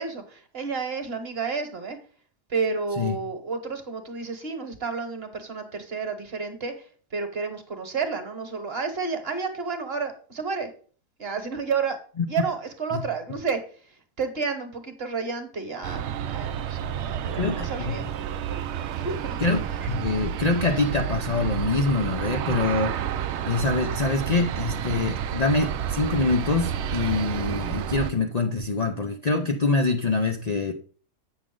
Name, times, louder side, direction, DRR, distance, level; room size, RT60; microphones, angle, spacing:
voice 1, 0.0-2.0 2.5-6.9 7.1-10.7 11.2-12.0 12.3-13.6 14.2-18.1 18.9-19.4, right 5 dB, 40° right, 7 dB, 1.3 m, -31 dB
Aircraft, 15.8-28.1, right 9 dB, 85° right, 0.6 m, -30 dB
voice 2, 17.3-18.0 19.4-23.0 23.4-30.7, left 3 dB, 90° left, 2 dB, 0.3 m, -25 dB
8.2 x 6.2 x 3.8 m, 0.42 s
omnidirectional pair, 1.7 m